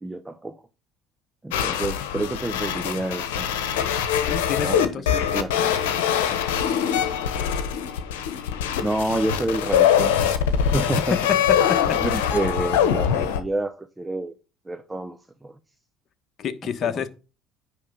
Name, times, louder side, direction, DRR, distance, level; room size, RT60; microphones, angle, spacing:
voice 1, 0.0-0.5 1.4-3.6 4.6-5.7 6.3-6.4 8.8-10.1 10.7-11.2 12.0-14.3 14.7-15.5 16.8-17.1, right 2 dB, 15° right, 0.8 m, -29 dB
sound 1, 1.5-13.4, left 9 dB, 85° left, 1.0 m, -23 dB
voice 2, 4.3-5.3 11.1-11.8 12.1-12.2 16.4-17.1, left 7 dB, 50° left, 1.2 m, -28 dB
9.8 x 3.5 x 6.6 m
supercardioid pair, 75°, 0 cm